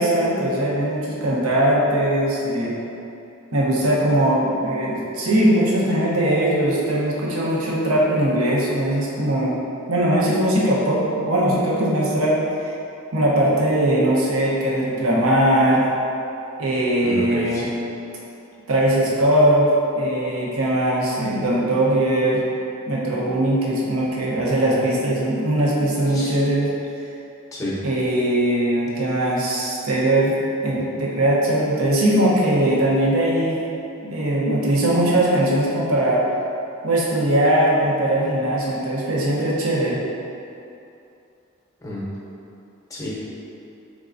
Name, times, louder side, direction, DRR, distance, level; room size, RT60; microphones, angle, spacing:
voice 1, 0.0-2.7 3.5-9.6 9.9-12.4 13.1-15.8 16.6-17.7 18.7-19.7 20.0-22.4 22.9-26.7 27.8-33.6 34.0-36.2 36.8-40.0, right 1 dB, 80° right, -5 dB, 0.7 m, -20 dB
voice 2, 17.0-17.7 26.1-26.3 27.5-27.8 41.8-42.1 42.9-43.2, left 1 dB, 15° left, -6 dB, 0.7 m, -30 dB
4.2 x 3.6 x 2.5 m, 2.7 s
head